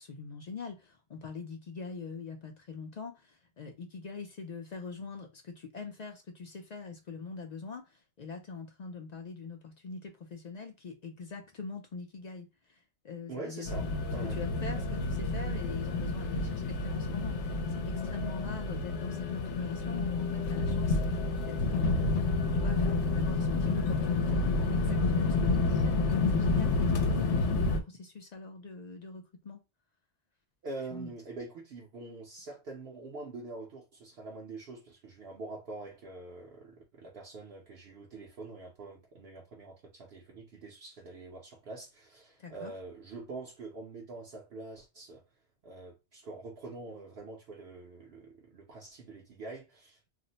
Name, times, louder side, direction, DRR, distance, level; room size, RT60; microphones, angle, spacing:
voice 1, 0.0-13.7 14.2-26.0 26.3-29.6 30.9-31.1 42.4-42.7, left 4 dB, 55° left, 0.4 m, -43 dB
voice 2, 13.3-14.4 14.7-14.9 30.6-45.2 45.6-50.1, right 3 dB, 65° right, 0.9 m, -45 dB
sound 1, 13.6-27.8, left 3 dB, 85° left, 0.9 m, -29 dB
2.5 x 2.0 x 3.9 m
omnidirectional pair, 1.2 m